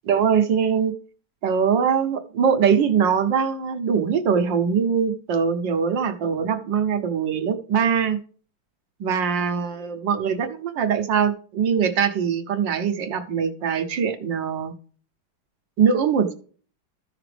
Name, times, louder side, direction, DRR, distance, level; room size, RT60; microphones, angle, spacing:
voice 1, 0.1-1.0 1.4-8.2 9.0-14.7 15.8-16.3, right 7 dB, 70° right, 7 dB, 1.7 m, -22 dB
14.0 x 5.9 x 3.4 m, 0.42 s
omnidirectional pair, 2.1 m